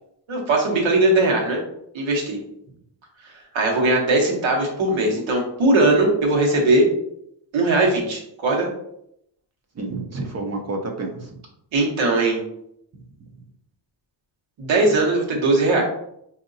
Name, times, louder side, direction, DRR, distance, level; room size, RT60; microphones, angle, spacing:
voice 1, 0.3-1.6 1.9-2.4 3.2-6.8 7.5-8.7 11.7-12.4 14.6-15.8, right 2 dB, 85° right, -1 dB, 1.2 m, -19 dB
voice 2, 9.7-11.4 12.9-13.5, right 3 dB, 35° right, 3 dB, 0.5 m, -31 dB
4.6 x 2.7 x 2.6 m, 0.74 s
wide cardioid pair, 160°, 45 cm